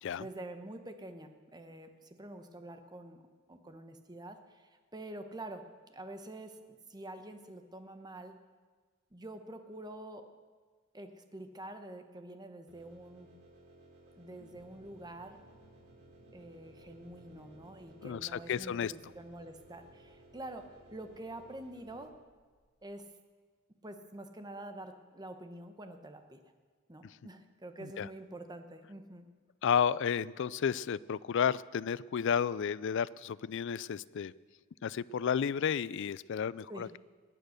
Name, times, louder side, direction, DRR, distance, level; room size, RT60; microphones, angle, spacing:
voice 1, 0.1-3.2 3.5-5.6 5.9-6.6 6.9-8.3 9.1-10.2 10.9-13.3 14.1-15.4 16.3-20.7 20.9-22.2 22.8-23.1 23.8-26.4 26.9-29.3 36.7-36.9, right 1 dB, 20° right, 7 dB, 1.0 m, -47 dB
sound 1, 12.7-22.0, right 1 dB, 90° right, 3.9 m, -59 dB
sound 2, 14.4-22.9, equal, 85° left, 2.3 m, -65 dB
voice 2, 18.0-18.9 27.0-27.2 27.8-28.1 29.6-34.3 34.8-37.0, left 7 dB, 60° left, 20 dB, 0.4 m, -32 dB
19.5 x 9.0 x 6.5 m, 1.5 s
head